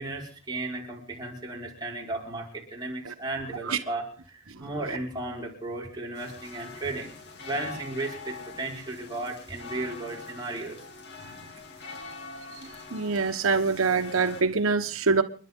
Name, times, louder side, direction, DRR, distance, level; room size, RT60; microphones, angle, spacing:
voice 1, 0.0-7.1 7.4-10.8, right 2 dB, 20° right, -2 dB, 5.2 m, -35 dB
sound 1, 6.1-14.4, left 4 dB, 55° left, 2.6 m, -44 dB
voice 2, 12.9-15.2, right 4 dB, 90° right, 7 dB, 1.2 m, -24 dB
29.5 x 11.0 x 3.8 m, 0.39 s
head